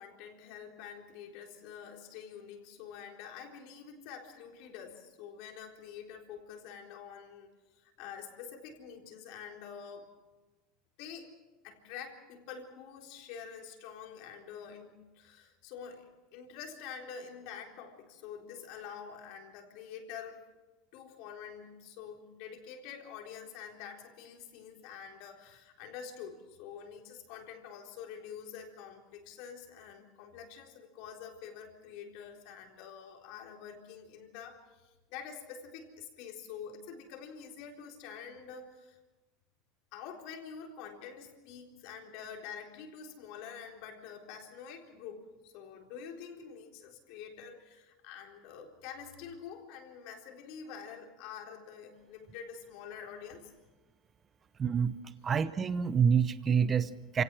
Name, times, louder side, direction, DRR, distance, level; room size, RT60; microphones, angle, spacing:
voice 1, 0.0-7.5 7.8-10.1 11.0-11.3 11.6-20.4 20.9-39.0 39.9-53.5, left 7 dB, 65° left, 2 dB, 3.9 m, -47 dB
voice 2, 54.6-55.0 55.2-57.2, right 7 dB, 25° right, 14 dB, 0.8 m, -27 dB
28.0 x 17.5 x 6.2 m, 1.2 s
supercardioid pair, 130°, 0 cm